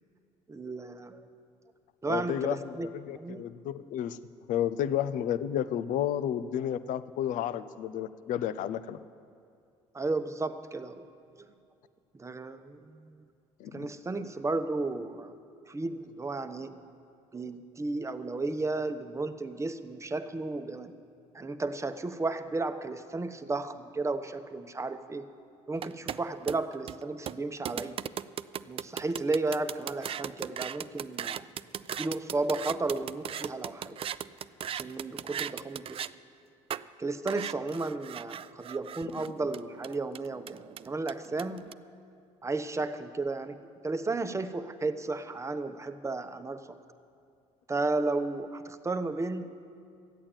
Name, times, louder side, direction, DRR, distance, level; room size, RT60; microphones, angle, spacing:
voice 1, 0.5-1.2 2.0-2.9 3.1-3.4 9.9-11.0 12.1-13.2 13.7-15.3 15.7-16.8 17.3-20.9 21.3-25.3 25.7-28.0 28.7-31.5 32.0-34.0 34.7-36.0 37.0-40.6 40.9-41.7 42.4-46.8 47.7-49.5, right 3 dB, 20° right, 9 dB, 1.0 m, -33 dB
voice 2, 2.1-4.2 4.5-9.0 13.6-13.9, left 10 dB, 65° left, 14 dB, 0.6 m, -32 dB
sound 1, 25.8-36.1 36.7-36.8 37.3-41.7, right 9 dB, 40° right, 0.4 m, -38 dB
13.5 x 8.7 x 9.0 m, 2.4 s
hypercardioid pair, 65°, 14 cm